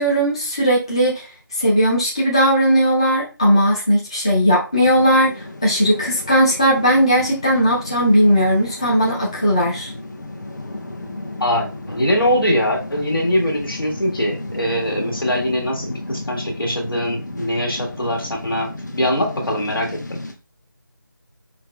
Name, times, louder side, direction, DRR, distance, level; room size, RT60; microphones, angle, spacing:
voice 1, 0.0-9.9, equal, 15° left, -5 dB, 0.4 m, -17 dB
sound 1, 4.7-20.3, left 2 dB, 55° left, 0.8 m, -33 dB
voice 2, 11.4-20.2, equal, 75° left, 0 dB, 1.5 m, -22 dB
5.6 x 2.1 x 2.3 m, 0.32 s
figure-of-eight pair, 165°, 12 cm